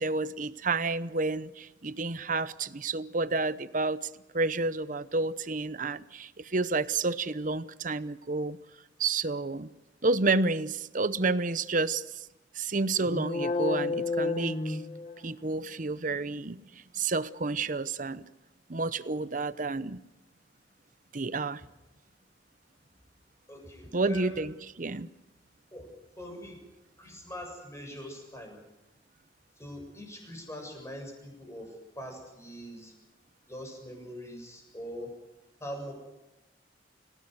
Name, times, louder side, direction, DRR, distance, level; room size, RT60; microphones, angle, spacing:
voice 1, 0.0-4.1 4.3-8.6 9.0-9.7 10.0-12.0 12.5-14.8 15.2-18.3 18.7-20.0 21.1-21.6 23.9-25.1, right 3 dB, 45° right, 15 dB, 0.8 m, -30 dB
sound 1, 13.0-15.5, left 3 dB, 35° left, 1.1 m, -31 dB
voice 2, 23.5-24.5 25.7-26.6 27.0-28.6 29.6-33.0 33.5-35.1 35.6-35.9, equal, 15° left, 2 dB, 7.4 m, -42 dB
29.0 x 17.0 x 7.9 m, 0.99 s
head